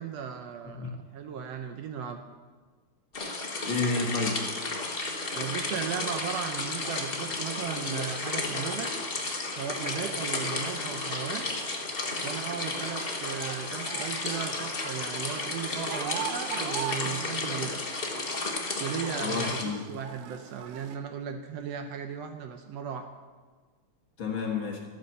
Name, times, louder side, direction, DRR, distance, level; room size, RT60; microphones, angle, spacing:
voice 1, 0.0-2.2 5.3-8.9 9.5-11.5 12.2-17.8 18.8-23.1, right 7 dB, 70° right, 6 dB, 1.7 m, -36 dB
sound 1, 3.1-19.6, left 3 dB, 35° left, 1.0 m, -33 dB
voice 2, 3.6-4.4 19.2-19.9 24.2-24.8, left 4 dB, 50° left, 0 dB, 2.0 m, -30 dB
sound 2, 9.9-21.0, right 11 dB, 90° right, 2.1 m, -43 dB
13.0 x 9.2 x 6.9 m, 1.4 s
omnidirectional pair, 3.3 m